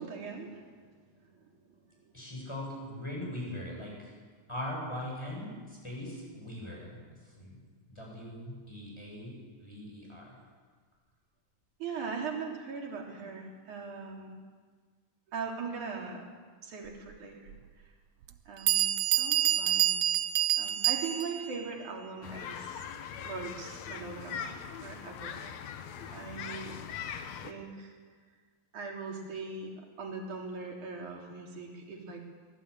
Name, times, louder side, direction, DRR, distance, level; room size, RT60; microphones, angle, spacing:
voice 1, 0.0-1.7 1.9-2.1 11.8-14.4 15.3-16.3 16.6-17.5 18.5-19.9 20.5-22.9 23.2-25.4 26.1-26.8 27.4-27.9 28.7-32.2, right 4 dB, 60° right, 0 dB, 4.7 m, -40 dB
voice 2, 2.1-4.1 4.5-7.6 7.9-10.4, left 1 dB, 5° left, -2 dB, 7.8 m, -41 dB
Bell, 17.5-17.6 18.3-18.4 18.7-21.5, right 11 dB, 80° right, 1.4 m, -27 dB
sound 1, 22.2-27.5, left 7 dB, 60° left, 2.2 m, -41 dB
23.5 x 18.0 x 8.9 m, 1.5 s
omnidirectional pair, 3.9 m